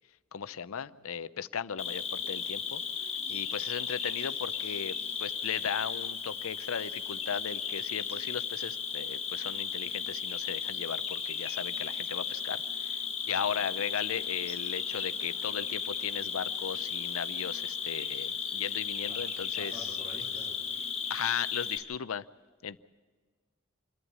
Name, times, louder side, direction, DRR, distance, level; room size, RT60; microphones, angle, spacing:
voice 1, 0.3-19.7 21.1-22.3 22.6-22.8, left 7 dB, 85° left, 15 dB, 0.6 m, -36 dB
Cricket, 1.8-21.8, left 6 dB, 30° left, 1.7 m, -35 dB
voice 2, 13.2-13.6 19.1-20.8, equal, 35° right, -4 dB, 3.2 m, -49 dB
27.5 x 11.0 x 8.5 m, 1.5 s
head